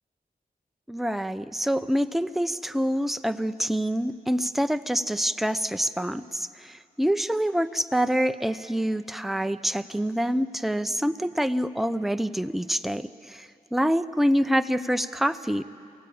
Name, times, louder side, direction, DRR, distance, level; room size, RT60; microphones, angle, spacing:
voice 1, 0.9-15.6, equal, ahead, 11 dB, 0.7 m, -26 dB
27.5 x 16.5 x 8.7 m, 2.4 s
cardioid pair, 60°, 16 cm